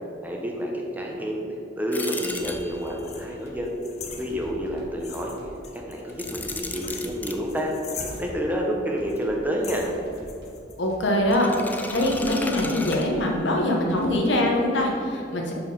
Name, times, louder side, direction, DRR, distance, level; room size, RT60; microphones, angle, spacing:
voice 1, 0.2-1.4 1.8-3.7 4.2-5.3 5.7-7.7 8.2-9.9, equal, 10° right, -1 dB, 0.7 m, -29 dB
sound 1, 1.9-3.1 6.1-7.4 11.3-13.6, left 2 dB, 10° left, 0.3 m, -34 dB
sound 2, 2.2-2.9 3.2-3.7 4.2-5.6 6.1-6.8 7.1-7.5 8.0-8.7 9.0-9.5 9.9-10.6 10.9-11.4 11.9-13.3 13.8-14.5, equal, 60° right, 1.2 m, -46 dB
sound 3, 2.4-4.7 5.0-8.5 9.1-9.2 9.6-13.0, left 4 dB, 40° left, 0.6 m, -42 dB
voice 2, 10.8-15.5, left 1 dB, 80° left, 0 dB, 1.1 m, -23 dB
5.4 x 4.6 x 5.3 m, 2.7 s
head